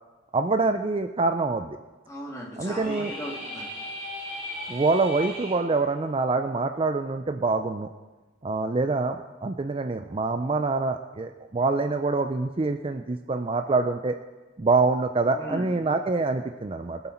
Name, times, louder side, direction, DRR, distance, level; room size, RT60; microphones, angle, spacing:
voice 1, 0.3-1.8 2.6-3.1 4.7-7.9 8.4-14.2 14.6-17.0, right 3 dB, 30° right, 7 dB, 0.4 m, -25 dB
voice 2, 2.1-3.6 15.2-15.8, equal, 20° left, -4 dB, 2.9 m, -37 dB
sound 1, 2.6-5.5, left 1 dB, 5° right, 5.1 m, -37 dB
23.0 x 8.1 x 4.4 m, 1.2 s
head